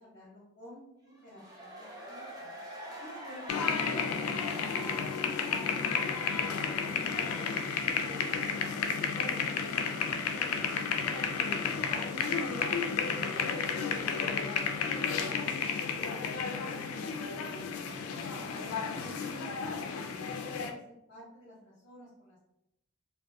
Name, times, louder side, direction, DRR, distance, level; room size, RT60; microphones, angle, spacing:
voice 1, 0.0-2.6 3.0-6.0 6.4-10.6 11.3-13.5 16.3-22.4, equal, 50° left, -8 dB, 0.8 m, -51 dB
sound 1, 1.2-12.0 12.3-12.4, equal, 20° right, 0.5 m, -47 dB
sound 2, 3.5-20.7, left 6 dB, 80° left, 0.3 m, -32 dB
2.3 x 2.2 x 2.6 m, 0.81 s
head